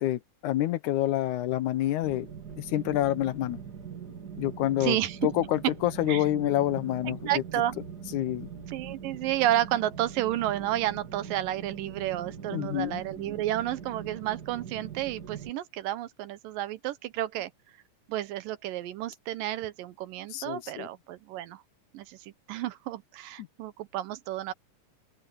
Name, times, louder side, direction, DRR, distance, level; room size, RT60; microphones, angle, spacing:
voice 1, 0.0-2.3 2.6-3.6 4.4-5.0 5.2-7.4 8.1-8.5 12.5-13.0 20.3-20.9 23.4-23.5, left 14 dB, 70° left, 2.2 m, -28 dB
sound 1, 2.0-15.5, right 7 dB, 35° right, 2.4 m, -42 dB
voice 2, 4.8-5.3 6.1-6.2 7.0-7.8 8.7-17.5 18.1-21.6 21.9-24.5, right 13 dB, 85° right, 2.6 m, -31 dB
open air
omnidirectional pair, 3.8 m